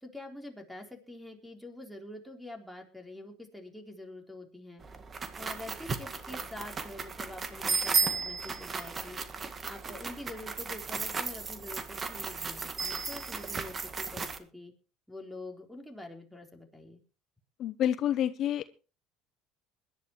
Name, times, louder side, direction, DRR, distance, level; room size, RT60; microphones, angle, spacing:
voice 1, 0.0-4.8 5.3-9.2 9.7-14.7 15.1-17.0, left 2 dB, ahead, 1 dB, 4.0 m, -46 dB
sound 1, 4.8-14.4, right 5 dB, 30° right, 1.7 m, -35 dB
voice 2, 17.6-18.8, left 10 dB, 55° left, 12 dB, 0.8 m, -29 dB
21.5 x 11.5 x 3.2 m, 0.33 s
supercardioid pair, 95°, 0 cm